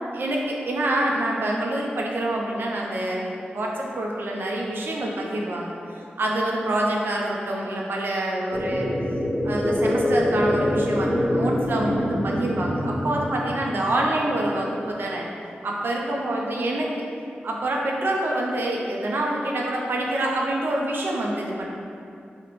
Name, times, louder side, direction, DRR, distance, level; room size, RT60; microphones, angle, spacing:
voice 1, 0.1-5.8 6.2-8.9 9.4-15.3 15.6-16.9 17.4-21.7, right 1 dB, 70° right, -2 dB, 0.4 m, -26 dB
sound 1, 8.5-14.6, left 1 dB, 5° right, 0.7 m, -25 dB
2.4 x 2.0 x 2.9 m, 2.6 s
wide cardioid pair, 95°, 4 cm